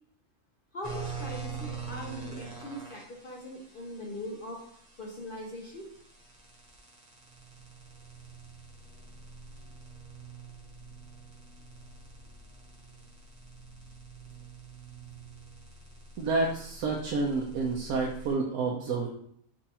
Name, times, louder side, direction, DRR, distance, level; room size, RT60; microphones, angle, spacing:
voice 1, 0.7-4.6 5.0-5.9, left 1 dB, 55° left, -1 dB, 0.6 m, -41 dB
sound 1, 0.8-18.3, right 4 dB, 35° right, 0.8 m, -45 dB
voice 2, 16.2-19.1, right 3 dB, 80° right, -2 dB, 1.1 m, -29 dB
5.2 x 2.4 x 2.8 m, 0.66 s
omnidirectional pair, 1.6 m